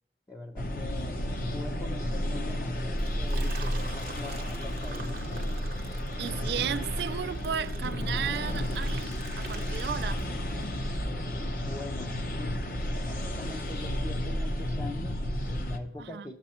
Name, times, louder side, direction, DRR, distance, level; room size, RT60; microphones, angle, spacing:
voice 1, 0.3-1.2 1.5-5.2 11.5-12.7 13.0-16.3, left 2 dB, 15° left, 0.6 m, -43 dB
sound 1, 0.6-15.8, equal, 50° left, 0.8 m, -32 dB
Liquid, 2.9-10.6, right 4 dB, 55° right, 0.8 m, -47 dB
sound 2, 5.1-7.3 7.9-8.2 10.0-11.5 13.2-14.6, equal, 70° left, 3.5 m, -55 dB
voice 2, 6.2-10.3 16.0-16.3, right 8 dB, 70° right, 0.3 m, -34 dB
11.5 x 7.4 x 4.3 m
head